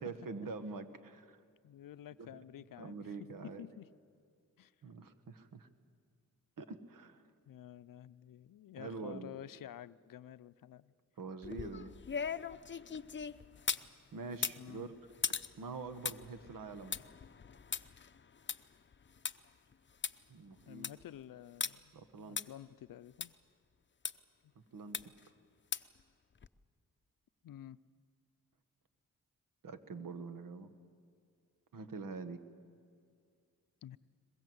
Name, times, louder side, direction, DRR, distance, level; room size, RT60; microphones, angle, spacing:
voice 1, 0.0-1.4 2.2-2.3 2.8-3.6 4.8-5.7 6.6-7.3 8.8-9.4 11.2-11.9 14.1-14.9 15.5-17.0 20.3-20.9 21.9-22.4 24.5-25.1 29.6-30.7 31.7-32.4, right 4 dB, 80° right, 11 dB, 1.5 m, -45 dB
voice 2, 1.6-3.9 4.6-4.7 7.5-10.9 14.6-14.9 20.7-23.4 24.4-24.5 27.4-27.8 33.8-34.0, left 11 dB, 80° left, 15 dB, 0.5 m, -51 dB
sound 1, 11.4-13.9 14.3-19.3 19.7-19.8 20.0-20.1 20.6-21.0 21.6-21.7 22.4-22.5 23.2-23.3 24.0-24.1 24.9-25.3 25.7-26.0 26.4-26.5, left 6 dB, 35° left, 0.7 m, -39 dB
22.0 x 21.5 x 7.9 m, 2.3 s
cardioid pair, 70°, 33 cm